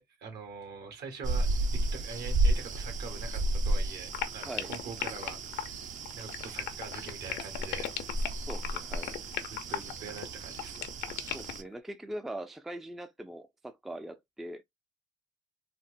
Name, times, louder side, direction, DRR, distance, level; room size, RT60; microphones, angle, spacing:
voice 1, 0.2-5.8 6.2-7.9 9.5-11.4, right 5 dB, 75° right, 1.6 m, -44 dB
sound 1, 1.2-11.6, right 2 dB, 45° right, 0.6 m, -33 dB
sound 2, 4.1-11.7, left 11 dB, 80° left, 0.8 m, -36 dB
voice 2, 8.5-9.1 11.3-14.6, right 1 dB, ahead, 0.4 m, -41 dB
4.2 x 2.0 x 2.5 m
cardioid pair, 110°, 17 cm